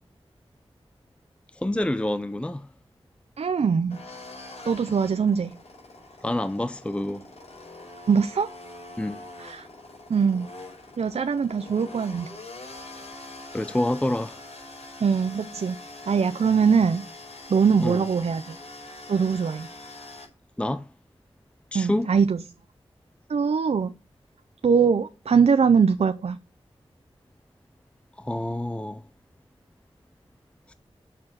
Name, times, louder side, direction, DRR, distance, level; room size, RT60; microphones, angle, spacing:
voice 1, 1.5-2.7 6.2-7.3 9.0-9.2 13.5-14.4 17.8-18.1 20.6-20.9 21.7-22.1 28.2-29.0 30.7-30.8, left 1 dB, 10° left, 0.5 m, -27 dB
voice 2, 3.4-4.0 4.7-5.5 8.1-8.5 9.4-9.7 10.1-10.5 11.0-12.3 15.0-15.8 16.1-17.0 17.5-18.6 19.1-19.7 21.7-22.4 23.3-23.9 24.6-26.4, right 6 dB, 80° right, 0.6 m, -22 dB
sound 1, 3.9-20.2, left 2 dB, 85° left, 5.0 m, -44 dB
8.4 x 6.7 x 5.8 m
wide cardioid pair, 95°, 11 cm